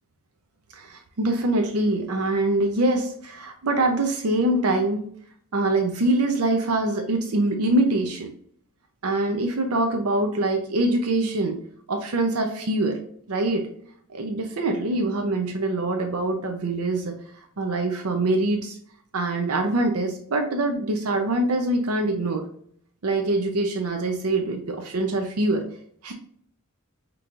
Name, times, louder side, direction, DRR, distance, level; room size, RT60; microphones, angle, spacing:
voice 1, 0.7-5.0 5.5-8.3 9.0-11.6 11.9-13.0 13.3-13.7 14.1-17.2 17.6-18.8 19.1-22.5 23.0-25.6 26.0-26.1, right 2 dB, 80° right, 4 dB, 0.6 m, -24 dB
5.2 x 3.0 x 2.5 m, 0.62 s
head